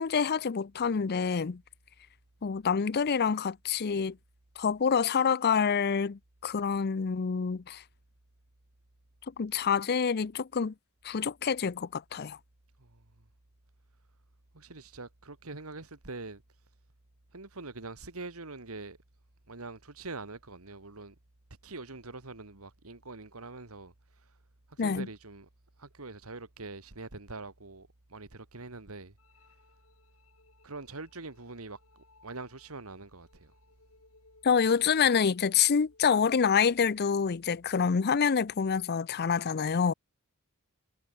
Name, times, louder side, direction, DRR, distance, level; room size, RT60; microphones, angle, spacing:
voice 1, 0.0-1.6 2.4-4.2 4.6-7.8 9.4-10.7 11.0-12.4 24.8-25.1 34.4-39.9, left 6 dB, 50° left, 0.5 m, -27 dB
voice 2, 14.5-16.4 17.3-19.0 19.5-21.1 21.6-23.9 24.7-25.5 25.8-29.1 30.6-33.5, right 3 dB, 80° right, 2.3 m, -44 dB
sound 1, 29.2-36.2, left 3 dB, 70° left, 4.2 m, -64 dB
head